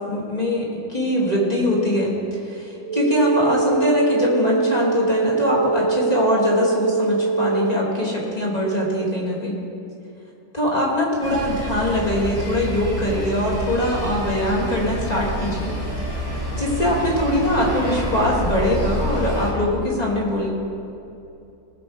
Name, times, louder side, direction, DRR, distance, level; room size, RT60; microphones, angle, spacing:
voice 1, 0.1-9.6 10.5-15.7 16.2-20.5, left 1 dB, 20° left, -4 dB, 2.4 m, -22 dB
sound 1, 2.8-7.8, right 4 dB, 90° right, 1.7 m, -23 dB
sound 2, 11.2-19.5, equal, 50° left, 3.4 m, -28 dB
20.5 x 7.2 x 5.0 m, 2.8 s
omnidirectional pair, 2.3 m